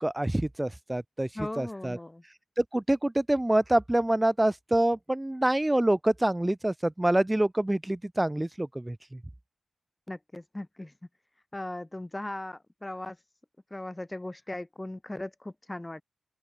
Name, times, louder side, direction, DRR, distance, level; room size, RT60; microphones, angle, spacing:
voice 1, 0.0-1.3 1.6-2.0 2.6-9.2, right 1 dB, 15° right, 2.9 m, -26 dB
voice 2, 1.3-2.2 10.1-10.9 11.5-13.2 13.7-16.0, left 1 dB, 20° left, 7.6 m, -38 dB
open air
cardioid pair, 50°, 0 cm